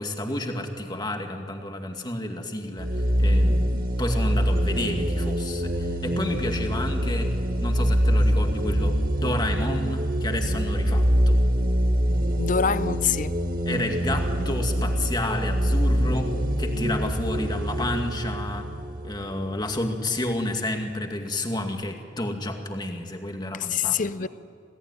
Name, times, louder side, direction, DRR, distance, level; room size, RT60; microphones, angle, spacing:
voice 1, 0.0-2.9 3.2-7.3 7.6-11.4 13.7-18.7 19.0-24.3, left 1 dB, 20° left, 2.1 m, -30 dB
sound 1, 2.8-20.2, equal, 45° right, 1.8 m, -24 dB
voice 2, 12.4-13.3 23.5-24.3, left 6 dB, 40° left, 0.6 m, -25 dB
27.5 x 18.0 x 9.7 m
head